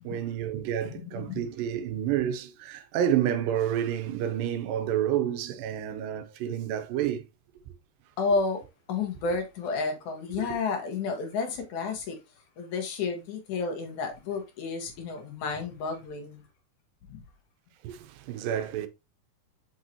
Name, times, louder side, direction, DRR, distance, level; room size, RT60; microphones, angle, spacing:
voice 1, 0.0-7.3 17.8-18.9, right 10 dB, 85° right, 2.4 m, -29 dB
voice 2, 0.9-1.4 8.2-8.6 8.9-12.2 12.6-16.4 17.1-17.2, left 4 dB, 65° left, 2.4 m, -31 dB
6.4 x 5.5 x 2.8 m
omnidirectional pair, 3.9 m